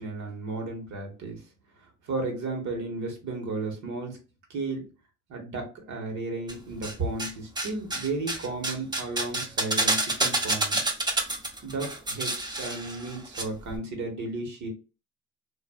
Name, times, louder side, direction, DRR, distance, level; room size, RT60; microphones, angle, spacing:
voice 1, 0.0-1.4 2.1-4.2 4.5-4.9 5.3-10.8 11.6-14.7, right 3 dB, 70° right, 3 dB, 1.2 m, -34 dB
sound 1, 6.5-7.3 7.6-13.4 13.7-13.8, right 1 dB, 15° right, 0.5 m, -28 dB
2.5 x 2.5 x 2.3 m, 0.32 s
cardioid pair, 90°, 30 cm